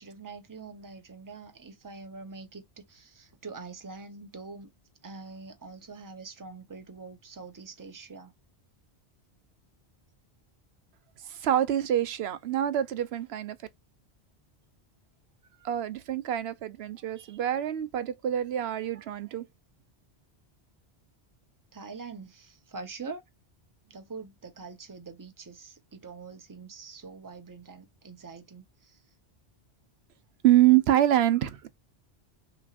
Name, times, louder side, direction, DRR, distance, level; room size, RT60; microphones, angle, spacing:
voice 1, 0.0-4.7 5.0-8.3 21.7-23.2 23.8-29.0, right 4 dB, 20° right, 0.8 m, -44 dB
voice 2, 11.2-13.6 15.6-19.5 30.4-31.7, right 12 dB, 70° right, 0.9 m, -25 dB
6.0 x 3.1 x 2.5 m
omnidirectional pair, 1.1 m